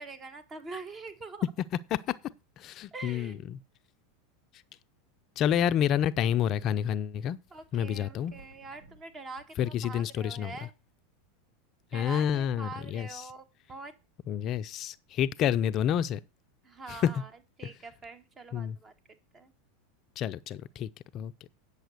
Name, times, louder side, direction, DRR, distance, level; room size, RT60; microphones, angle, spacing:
voice 1, 0.0-1.4 2.9-3.4 7.5-10.7 11.9-13.4 13.7-13.9 16.6-17.3 17.6-18.9 19.3-19.5, right 3 dB, 30° right, 2.1 m, -44 dB
voice 2, 2.6-3.6 5.4-7.4 7.7-8.3 9.6-10.7 11.9-13.3 14.3-16.2 16.9-17.2 17.6-17.7 18.5-18.8 20.2-20.9 21.1-21.3, left 9 dB, 45° left, 0.5 m, -29 dB
sound 1, 6.6-6.9 7.2-7.3 7.7-10.2 10.9-11.0, right 2 dB, 90° right, 2.6 m, -56 dB
9.1 x 6.9 x 6.6 m
hypercardioid pair, 95°, 0 cm